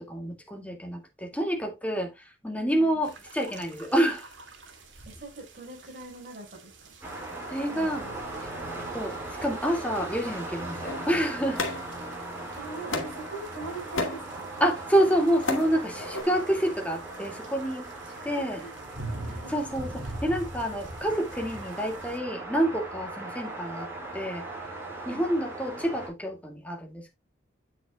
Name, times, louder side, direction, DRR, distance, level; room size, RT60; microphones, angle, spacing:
voice 1, 0.0-4.3 7.5-8.1 8.4-8.5 8.9-11.6 14.6-17.8 18.2-18.6 19.5-23.9 24.1-24.5 25.1-27.0, right 1 dB, 5° left, 1.9 m, -28 dB
voice 2, 2.5-3.0 4.7-4.8 5.0-7.0 7.7-8.2 12.5-14.5 15.7-15.8 17.6-17.7 18.0-18.7 19.3-19.6 25.1-25.3, right 3 dB, 45° right, 4.8 m, -43 dB
Rain and storm water pouring, 3.0-22.2, right 2 dB, 65° right, 2.1 m, -45 dB
sound 1, 7.0-26.1, right 2 dB, 10° right, 4.9 m, -39 dB
sound 2, 10.8-12.4 12.9-13.3 13.7-14.3 15.0-15.7 16.0-16.2, left 3 dB, 75° left, 2.2 m, -32 dB
9.0 x 7.8 x 2.2 m
head